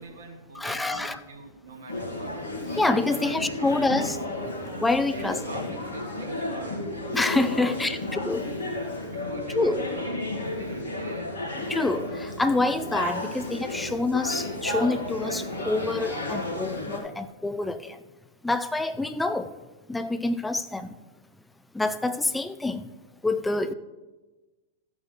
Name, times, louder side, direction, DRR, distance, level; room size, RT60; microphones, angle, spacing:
voice 1, 0.0-2.4 3.0-4.2 5.0-6.9 7.6-8.0 8.6-10.2 10.6-11.4, right 3 dB, 65° right, 1.6 m, -45 dB
voice 2, 0.6-1.2 2.8-4.2 4.8-5.4 7.1-8.4 9.5-9.8 11.7-18.0 18.4-19.5 19.9-20.9 21.7-22.9 23.2-23.7, left 2 dB, 5° left, 0.6 m, -27 dB
sound 1, 1.9-17.0, left 2 dB, 70° left, 2.2 m, -32 dB
14.0 x 8.1 x 3.3 m
figure-of-eight pair, 100°, 0 cm